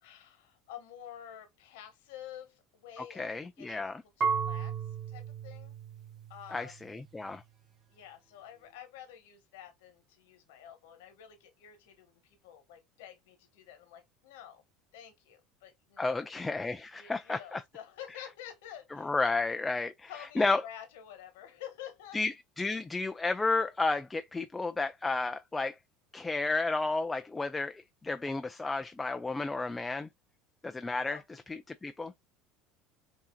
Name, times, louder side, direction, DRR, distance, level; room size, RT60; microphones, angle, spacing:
voice 1, 0.0-3.3 3.6-3.8 4.2-4.7 5.1-5.7 6.3-6.8 7.9-14.6 14.9-16.2 16.9-19.4 20.1-22.2 31.0-31.2, left 10 dB, 85° left, 1.2 m, -49 dB
voice 2, 3.0-4.0 6.5-7.4 16.0-17.6 19.0-20.6 22.1-25.8 26.1-30.1 30.6-32.1, left 3 dB, 15° left, 0.3 m, -32 dB
Marimba xylophone / Wood, 4.2-7.1, right 6 dB, 35° right, 0.9 m, -35 dB
5.5 x 2.7 x 2.2 m
supercardioid pair, 115°, 0 cm